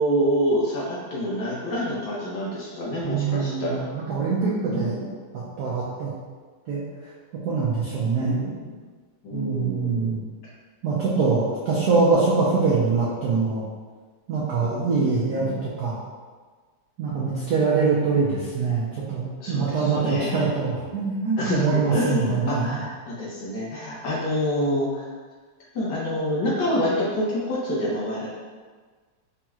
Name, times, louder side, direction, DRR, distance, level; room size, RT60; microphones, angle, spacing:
voice 1, 0.0-3.9 4.6-5.1 8.2-8.7 9.2-10.1 14.6-15.6 19.4-20.4 21.4-25.1 25.7-28.3, equal, 65° left, -6 dB, 1.3 m, -27 dB
voice 2, 3.0-5.0 5.6-6.1 6.7-6.8 7.4-8.4 9.3-10.2 10.8-13.6 14.3-16.0 17.0-22.8, right 4 dB, 75° right, -7 dB, 0.9 m, -24 dB
5.1 x 2.9 x 2.3 m, 1.5 s
omnidirectional pair, 2.4 m